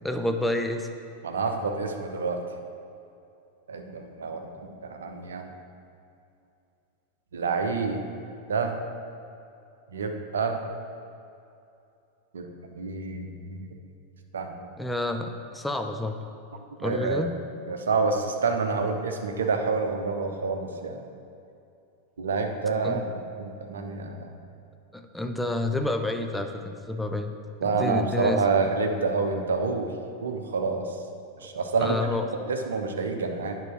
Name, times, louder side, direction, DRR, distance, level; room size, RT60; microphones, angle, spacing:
voice 1, 0.0-0.9 14.8-16.2 16.8-17.3 22.8-23.0 24.9-27.3 27.6-28.4 31.8-32.3, left 2 dB, 5° left, 5 dB, 0.6 m, -29 dB
voice 2, 1.2-2.4 3.7-5.5 7.3-8.0 8.5-8.8 9.9-10.6 12.3-13.7 14.3-14.5 16.8-17.3 17.7-21.0 22.2-24.3 27.6-29.9 30.2-30.9 31.4-32.0 32.3-33.6, right 4 dB, 65° right, 5 dB, 0.8 m, -28 dB
9.3 x 5.8 x 4.6 m, 2.6 s
figure-of-eight pair, 90°, 0 cm